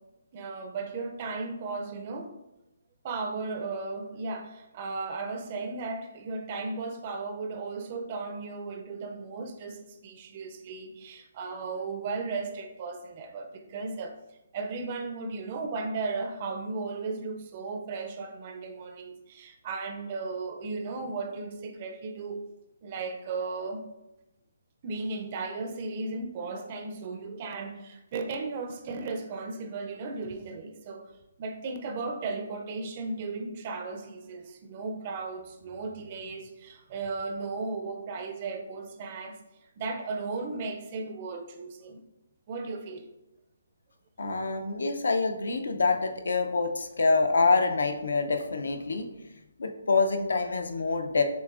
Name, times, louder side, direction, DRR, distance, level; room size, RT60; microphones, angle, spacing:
voice 1, 0.3-2.3 3.0-14.2 14.5-22.4 22.8-23.8 24.8-31.1 31.4-39.4 39.8-42.0 42.5-43.1, right 3 dB, 30° right, 5 dB, 0.4 m, -35 dB
voice 2, 44.2-49.1 49.6-51.2, left 4 dB, 80° left, 6 dB, 0.5 m, -26 dB
6.7 x 2.5 x 2.4 m, 0.96 s
hypercardioid pair, 165°, 0 cm